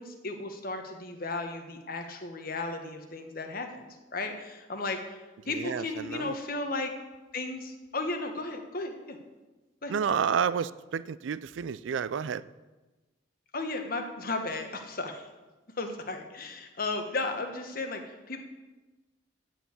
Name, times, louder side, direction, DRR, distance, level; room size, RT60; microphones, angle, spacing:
voice 1, 0.0-3.8 4.1-5.0 5.5-6.9 7.3-9.2 9.8-9.9 13.5-15.3 15.8-18.0 18.3-18.4, left 3 dB, 50° left, 5 dB, 1.3 m, -34 dB
voice 2, 5.5-6.4 9.9-12.4, right 7 dB, 80° right, 18 dB, 0.4 m, -30 dB
13.5 x 4.6 x 8.3 m, 1.2 s
head